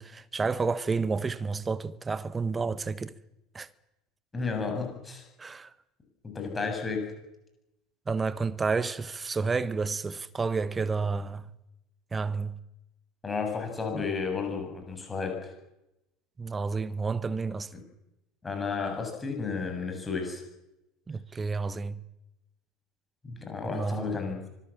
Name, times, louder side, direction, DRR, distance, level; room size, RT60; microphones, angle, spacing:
voice 1, 0.0-3.1 3.5-3.7 5.4-5.7 8.1-11.5 12.1-12.6 13.9-14.1 16.4-17.7 21.1-22.0 23.6-24.1, right 4 dB, 20° right, 1.3 m, -30 dB
voice 2, 4.3-5.2 6.2-7.1 13.2-15.5 17.7-17.8 18.4-20.4 23.2-24.5, left 5 dB, 20° left, 7.5 m, -32 dB
25.0 x 19.5 x 7.5 m
figure-of-eight pair, 70°, 0 cm